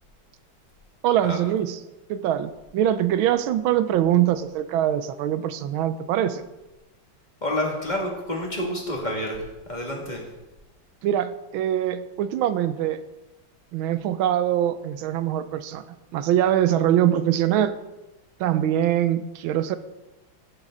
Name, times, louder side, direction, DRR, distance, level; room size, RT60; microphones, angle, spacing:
voice 1, 1.0-1.8 2.1-6.4 11.0-13.0 13.7-17.8 18.4-19.8, right 11 dB, 80° right, 12 dB, 1.4 m, -23 dB
voice 2, 7.4-9.4 9.7-10.2, left 1 dB, 20° left, -1 dB, 2.0 m, -28 dB
15.5 x 7.4 x 3.8 m, 1.0 s
omnidirectional pair, 2.2 m